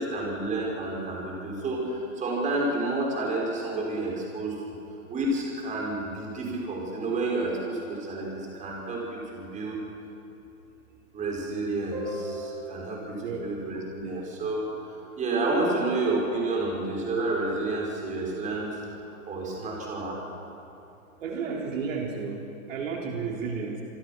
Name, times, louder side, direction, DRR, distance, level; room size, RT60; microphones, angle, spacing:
voice 1, 0.0-4.5 5.1-9.8 11.1-18.8 19.3-20.1, right 2 dB, 15° right, -2 dB, 6.1 m, -30 dB
voice 2, 13.2-13.5 21.2-23.8, right 5 dB, 60° right, 0 dB, 3.6 m, -32 dB
27.0 x 23.0 x 6.2 m, 2.7 s
hypercardioid pair, 145°, 43 cm